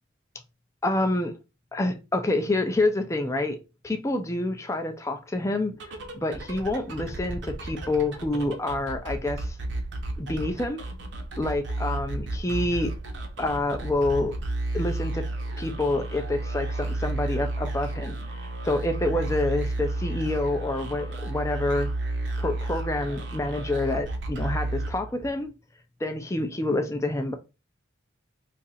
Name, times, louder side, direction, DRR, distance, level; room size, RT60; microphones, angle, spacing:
voice 1, 0.8-1.4 1.7-3.6 3.8-9.6 10.2-10.9 11.4-12.9 13.4-14.4 14.7-15.3 15.6-21.9 22.4-25.5 26.0-27.3, left 2 dB, 15° left, 0.4 m, -27 dB
sound 1, 5.7-25.4, right 2 dB, 60° right, 0.8 m, -32 dB
2.8 x 2.5 x 4.1 m
head